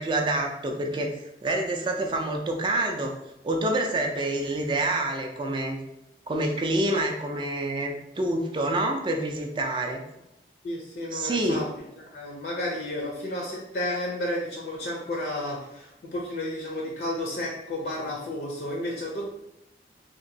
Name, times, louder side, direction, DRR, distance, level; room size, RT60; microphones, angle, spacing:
voice 1, 0.0-3.1 3.4-5.8 6.3-10.0 11.1-11.6, right 1 dB, 25° right, 2 dB, 0.3 m, -27 dB
voice 2, 10.6-11.8 12.1-19.3, left 1 dB, 60° left, -2 dB, 0.6 m, -32 dB
2.9 x 2.6 x 2.6 m, 0.89 s
head